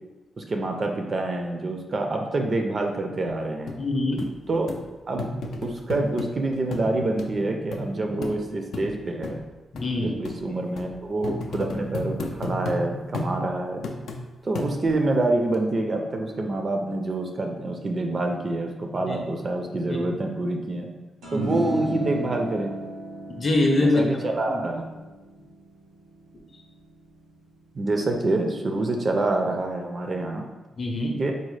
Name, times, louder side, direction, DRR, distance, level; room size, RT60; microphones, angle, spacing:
voice 1, 0.4-3.8 4.5-4.8 5.1-5.3 5.6-9.4 10.0-13.8 14.4-20.9 21.3-22.7 23.7-25.0 27.8-30.4 31.2-31.3, right 2 dB, 35° right, 3 dB, 0.4 m, -26 dB
sound 1, 3.7-3.8 4.2-4.3 4.7-4.8 5.2-6.3 6.7-6.9 7.2-7.3 7.7-7.8 8.2-8.4 8.7-8.9 9.2-9.4 9.8-9.9 10.2-10.4 10.8-10.9 11.2-12.8 13.1-13.3 13.8-14.2 14.6-15.0 15.5-15.6, left 3 dB, 85° left, 0.3 m, -32 dB
voice 2, 3.8-4.3 9.7-10.2 19.1-19.2 19.9-20.0 23.4-24.0 24.5-24.6 30.8-31.1, left 2 dB, 40° left, 1 dB, 0.6 m, -23 dB
sound 2, 21.2-27.8, right 1 dB, 85° right, 1.0 m, -35 dB
3.9 x 2.0 x 3.1 m, 1.1 s
cardioid pair, 125°, 0 cm